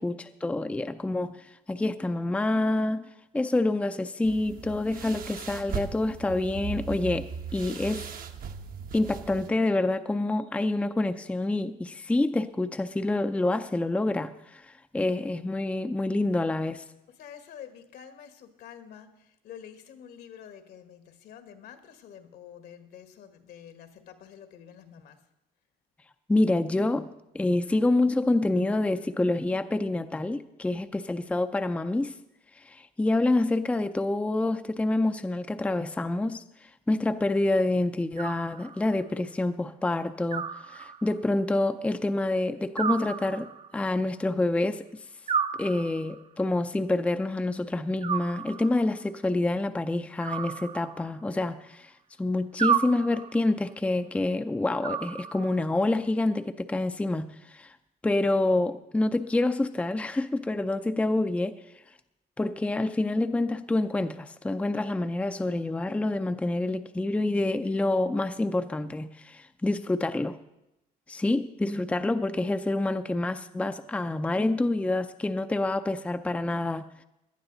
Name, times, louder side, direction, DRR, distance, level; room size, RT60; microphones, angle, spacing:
voice 1, 0.0-1.4 1.7-3.0 3.3-8.1 8.9-14.6 14.9-16.8 26.3-27.1 27.3-32.1 32.6-36.4 36.9-44.8 45.6-51.9 52.2-57.7 58.0-61.5 62.4-70.4 71.1-76.9, left 2 dB, 10° left, 8 dB, 0.5 m, -27 dB
sound 1, 4.2-9.5, right 6 dB, 60° right, 1.1 m, -38 dB
voice 2, 17.1-25.2, left 9 dB, 70° left, 8 dB, 1.6 m, -48 dB
Animal, 38.2-39.0 40.3-41.3 42.8-43.8 45.3-46.3 48.0-48.9 50.2-51.3 52.6-53.5 54.8-55.7, right 7 dB, 40° right, 0.7 m, -32 dB
17.5 x 11.5 x 4.0 m, 0.89 s
cardioid pair, 110°, 17 cm